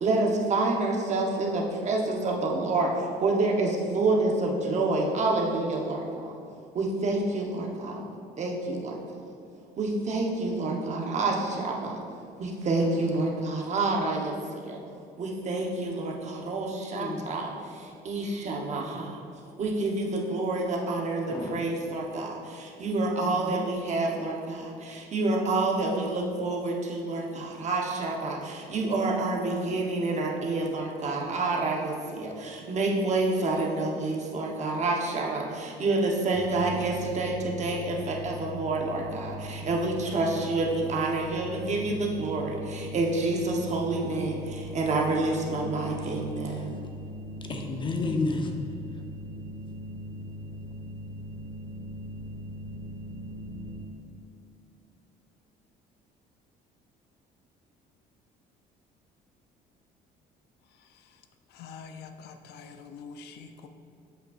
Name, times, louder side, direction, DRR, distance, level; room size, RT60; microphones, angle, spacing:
voice 1, 0.0-6.3 6.7-8.0 8.4-9.0 9.8-12.0 12.4-14.3 14.6-14.8 15.2-19.2 19.6-46.7, right 2 dB, 45° right, 0 dB, 0.9 m, -28 dB
voice 2, 16.9-17.2 18.7-18.9 21.3-21.6 23.2-23.4 47.5-48.5, left 3 dB, 30° left, 3 dB, 0.6 m, -31 dB
sound 1, 36.3-53.8, equal, 25° right, 1.2 m, -40 dB
voice 3, 61.5-63.7, left 5 dB, 75° left, 7 dB, 0.5 m, -45 dB
7.6 x 5.2 x 2.4 m, 2.5 s
cardioid pair, 110°, 17 cm